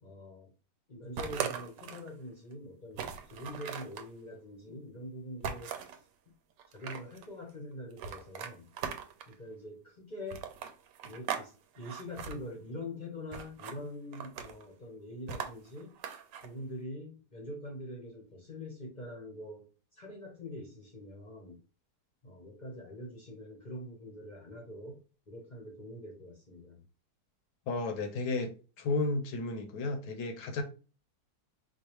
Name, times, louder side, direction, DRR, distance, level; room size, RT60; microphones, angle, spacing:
voice 1, 0.0-0.5 0.9-6.0 6.7-8.7 9.3-10.4 11.0-16.0 16.4-19.7 19.9-21.6 22.2-25.0 25.3-26.8, left 1 dB, 35° left, 0.7 m, -44 dB
sound 1, 1.2-2.1 2.5-2.6 2.9-4.1 5.4-6.0 6.6-7.3 8.0-9.3 10.3-11.5 11.7-12.3 13.3-13.8 14.1-14.6 15.3-16.5, right 8 dB, 85° right, 1.2 m, -39 dB
voice 2, 27.7-30.6, left 3 dB, 75° left, 1.3 m, -33 dB
4.5 x 2.4 x 3.0 m
omnidirectional pair, 1.9 m